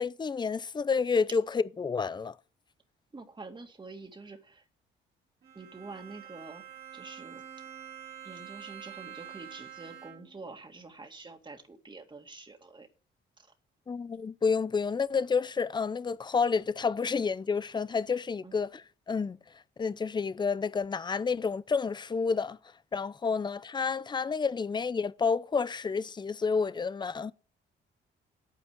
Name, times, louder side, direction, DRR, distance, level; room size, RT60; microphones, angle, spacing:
voice 1, 0.0-2.3 13.9-19.4 19.8-22.6 22.9-27.3, left 5 dB, 20° left, 0.5 m, -29 dB
voice 2, 3.1-4.6 5.5-6.6 6.9-7.4 8.2-12.9 13.4-13.5 18.4-18.5, right 3 dB, 25° right, 2.3 m, -46 dB
Bowed string instrument, 5.4-10.5, right 9 dB, 50° right, 2.5 m, -47 dB
9.2 x 8.7 x 8.0 m
cardioid pair, 90°, 20 cm